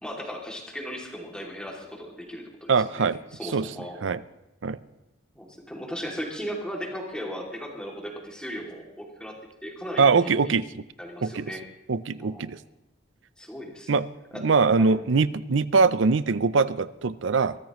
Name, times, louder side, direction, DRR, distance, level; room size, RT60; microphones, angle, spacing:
voice 1, 0.0-4.1 5.3-9.3 9.6-10.5 11.0-11.6 12.2-12.5 13.4-13.9 14.3-14.4 14.7-14.9, equal, 5° left, -1 dB, 2.6 m, -37 dB
voice 2, 2.7-3.2 3.5-3.7 4.0-4.2 4.6-4.8 10.0-10.6 11.2-11.5 11.9-12.6 13.9-14.0 14.4-17.6, right 4 dB, 75° right, 16 dB, 0.6 m, -22 dB
23.0 x 14.0 x 3.1 m, 0.96 s
head